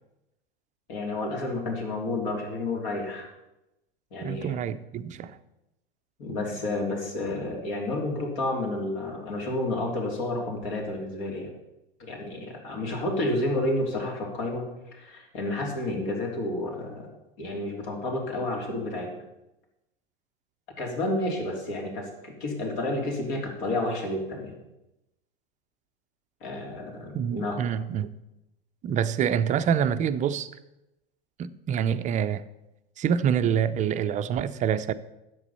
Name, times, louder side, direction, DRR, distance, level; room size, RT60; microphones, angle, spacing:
voice 1, 0.9-3.3 4.1-4.6 6.2-11.5 12.0-17.1 17.4-19.2 20.8-24.5 26.4-27.6, left 2 dB, 55° left, 3.0 m, -30 dB
voice 2, 4.2-5.4 27.1-28.1 28.8-30.5 31.4-32.4 33.0-34.9, right 8 dB, 25° right, 0.5 m, -26 dB
11.0 x 7.8 x 5.6 m
hypercardioid pair, 95°, 31 cm